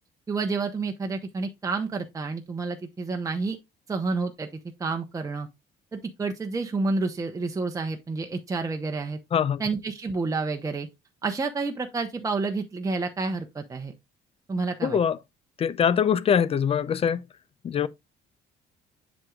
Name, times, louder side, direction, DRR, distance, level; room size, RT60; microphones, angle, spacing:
voice 1, 0.3-3.6 3.9-4.5 4.8-5.5 5.9-9.2 9.6-10.9 11.2-13.9 14.5-15.0, right 3 dB, 20° right, 0.9 m, -29 dB
voice 2, 9.3-9.6 14.8-15.2 15.6-17.2 17.6-17.9, left 7 dB, 35° left, 0.5 m, -23 dB
7.5 x 6.3 x 2.4 m
cardioid pair, 110°, 17 cm